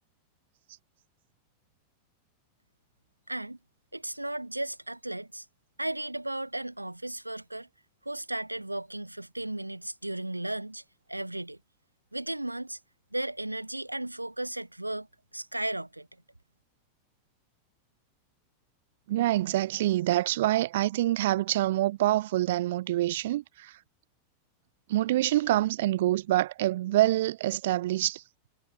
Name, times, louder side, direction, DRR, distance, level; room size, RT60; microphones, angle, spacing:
voice 1, 3.3-3.6 3.9-5.4 5.8-7.7 8.0-10.8 11.1-11.6 12.1-12.8 13.1-15.1 15.3-16.1, right 1 dB, 85° right, 1.5 m, -35 dB
voice 2, 19.1-23.7 24.9-28.2, right 15 dB, 55° right, 0.8 m, -26 dB
figure-of-eight pair, 90°, 0 cm